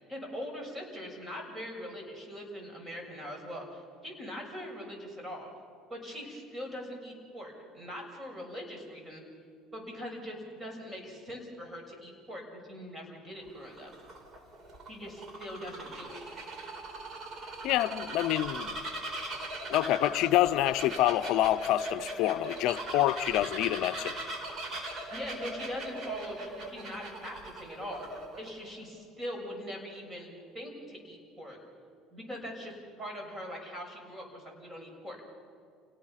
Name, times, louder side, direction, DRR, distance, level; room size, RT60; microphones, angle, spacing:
voice 1, 0.1-5.5 5.9-9.2 9.7-13.9 14.9-16.2 25.1-28.1 28.4-31.6 32.1-35.2, equal, 25° right, 2 dB, 6.7 m, -42 dB
Bird vocalization bird call bird song, 13.5-28.5, right 2 dB, 45° right, 4.1 m, -40 dB
voice 2, 17.6-18.8 19.7-24.1, left 14 dB, 70° left, 14 dB, 0.5 m, -27 dB
29.5 x 18.5 x 5.8 m, 2.5 s
supercardioid pair, 105°, 0 cm